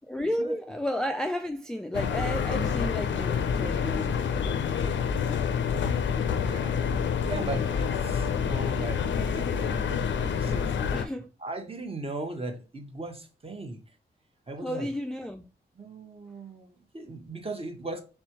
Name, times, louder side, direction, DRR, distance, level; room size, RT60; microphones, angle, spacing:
voice 1, 0.1-5.0 10.9-11.3 14.6-15.5, left 1 dB, 5° left, 0.3 m, -33 dB
sound 1, 1.9-11.0, left 7 dB, 85° left, 0.5 m, -27 dB
voice 2, 6.3-6.9 7.2-10.7 11.4-13.8 14.5-14.9 15.7-18.0, right 2 dB, 30° right, 0.9 m, -38 dB
4.3 x 3.4 x 2.9 m
cardioid pair, 80°, 19 cm